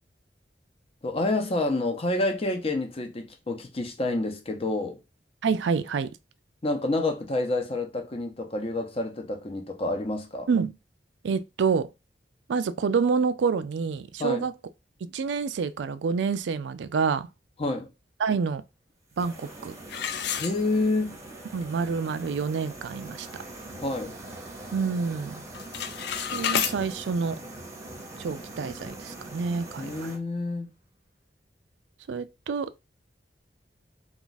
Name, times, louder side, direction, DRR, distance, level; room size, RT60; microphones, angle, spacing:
voice 1, 1.0-5.0 6.6-10.5 14.2-14.5 17.6-17.9 20.4-21.2 23.8-24.1 29.8-30.7, left 2 dB, 35° left, 0.7 m, -28 dB
voice 2, 5.4-6.1 10.5-10.7 11.2-11.9 12.5-14.5 15.0-17.3 18.2-18.6 19.2-19.7 21.5-23.3 24.7-25.4 26.3-27.4 28.2-30.1 32.1-32.7, right 5 dB, 80° right, 0.4 m, -27 dB
sound 1, 19.2-30.2, right 2 dB, 15° right, 0.8 m, -42 dB
sound 2, 19.9-21.2 21.6-21.7 22.3-22.4 22.8-23.1 23.5-24.6 24.9-25.2 25.5-26.8, left 8 dB, 65° left, 0.3 m, -31 dB
2.4 x 2.4 x 3.9 m
head